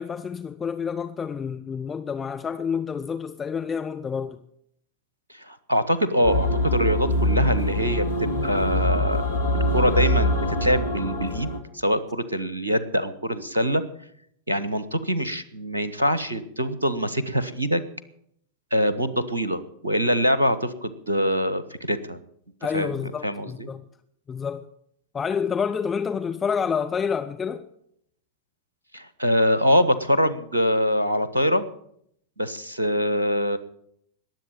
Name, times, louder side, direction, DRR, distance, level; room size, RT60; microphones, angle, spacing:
voice 1, 0.0-4.4 22.6-23.8 24.3-24.7 25.1-27.6, left 6 dB, 20° left, 0.8 m, -28 dB
voice 2, 5.3-9.3 9.5-13.8 14.5-17.8 18.7-22.2 22.7-23.7 28.9-31.6 32.4-33.6, equal, 80° right, 1.1 m, -24 dB
sound 1, 6.2-11.6, left 1 dB, 70° left, 2.5 m, -24 dB
20.5 x 7.8 x 8.8 m
figure-of-eight pair, 90°, 0 cm